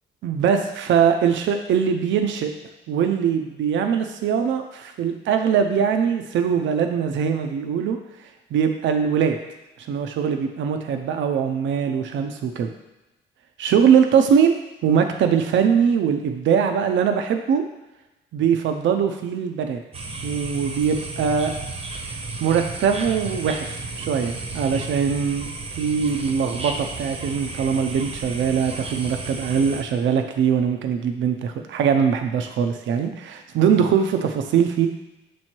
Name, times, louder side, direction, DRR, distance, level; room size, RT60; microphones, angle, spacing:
voice 1, 0.2-2.5 2.9-8.0 8.5-9.4 9.8-12.7 13.6-14.6 14.8-17.6 18.3-19.8 20.2-21.5 22.4-25.5 25.7-34.9, right 7 dB, 70° right, 5 dB, 0.6 m, -21 dB
sound 1, 19.9-29.8, right 3 dB, 30° right, 0.8 m, -33 dB
6.8 x 3.1 x 4.4 m, 0.98 s
cardioid pair, 90°, 20 cm